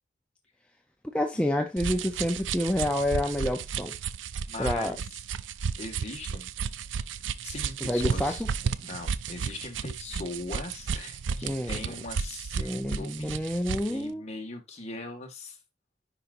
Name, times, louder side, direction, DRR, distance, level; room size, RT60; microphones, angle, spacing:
voice 1, 1.1-3.9 4.6-5.0 7.8-8.4 11.4-11.9 12.5-14.3, left 1 dB, 5° left, 0.6 m, -28 dB
sound 1, 1.8-14.0, right 6 dB, 75° right, 0.4 m, -33 dB
voice 2, 4.5-5.0 5.8-6.5 7.4-8.4 8.8-13.4 13.9-15.6, left 2 dB, 35° left, 1.7 m, -40 dB
10.0 x 4.1 x 2.6 m
head